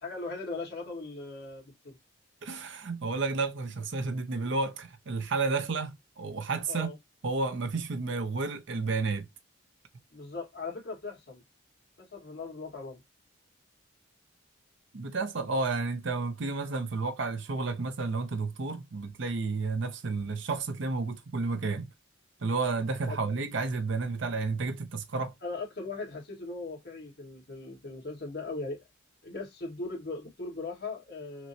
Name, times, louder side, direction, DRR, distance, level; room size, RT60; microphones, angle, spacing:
voice 1, 0.0-2.0 6.7-7.0 10.1-11.4 12.0-13.0 23.1-23.2 25.4-28.8 29.2-31.5, left 3 dB, 55° left, 1.8 m, -39 dB
voice 2, 2.4-6.9 7.2-9.3 14.9-21.9 22.4-25.3, right 3 dB, 65° right, 0.6 m, -31 dB
5.9 x 2.2 x 2.7 m
head